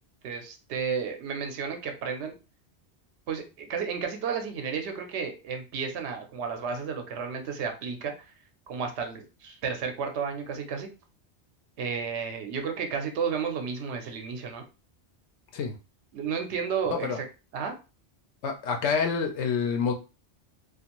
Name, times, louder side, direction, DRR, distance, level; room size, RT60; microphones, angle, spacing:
voice 1, 0.2-2.3 3.3-8.3 8.7-10.9 11.8-14.6 16.1-17.3 17.5-17.7, right 6 dB, 85° right, 5 dB, 0.9 m, -32 dB
voice 2, 18.4-19.9, left 5 dB, 90° left, 4 dB, 0.9 m, -27 dB
2.5 x 2.4 x 2.9 m, 0.31 s
omnidirectional pair, 1.1 m